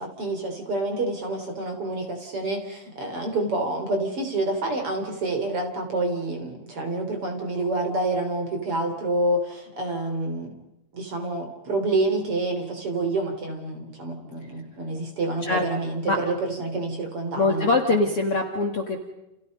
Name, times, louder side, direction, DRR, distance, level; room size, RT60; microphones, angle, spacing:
voice 1, 0.0-10.6 10.9-17.7, right 2 dB, 35° right, 4 dB, 3.8 m, -28 dB
voice 2, 17.3-19.0, left 3 dB, 45° left, 3 dB, 2.3 m, -23 dB
29.5 x 29.5 x 5.3 m, 0.91 s
omnidirectional pair, 4.6 m